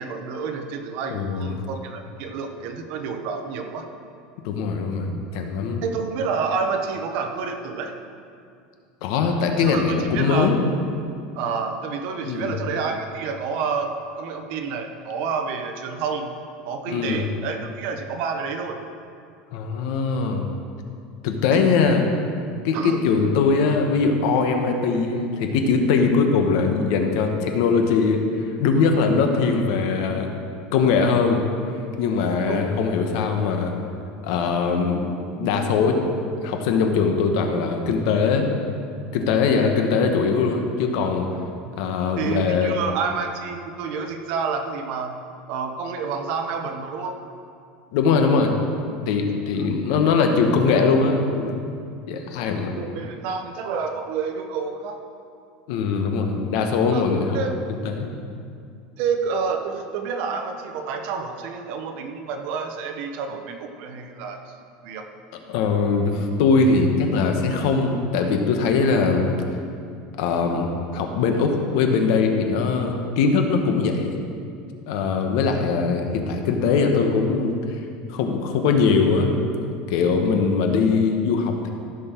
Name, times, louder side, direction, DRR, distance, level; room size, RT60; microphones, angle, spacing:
voice 1, 0.0-3.9 5.8-7.9 9.6-9.8 10.1-10.5 11.3-16.3 16.6-18.8 21.5-21.6 22.7-23.0 32.5-32.7 42.2-45.2 45.5-47.2 49.6-49.7 52.8-55.0 56.9-57.1 57.3-57.5 59.0-64.5 64.8-65.1, right 5 dB, 55° right, 5 dB, 1.0 m, -29 dB
voice 2, 1.1-1.5 4.4-5.8 9.0-10.6 12.2-12.6 16.9-17.2 19.5-20.5 21.2-22.1 22.6-28.2 28.6-30.3 30.7-31.4 32.0-33.7 34.2-36.0 36.4-38.5 39.1-41.3 41.8-42.7 47.9-48.5 49.1-51.6 52.1-52.7 55.7-57.4 57.8-58.1 65.5-69.4 70.2-74.2 74.9-77.8 78.1-81.7, left 4 dB, 70° left, 4 dB, 1.2 m, -21 dB
15.0 x 6.3 x 4.6 m, 2.4 s
supercardioid pair, 155°, 3 cm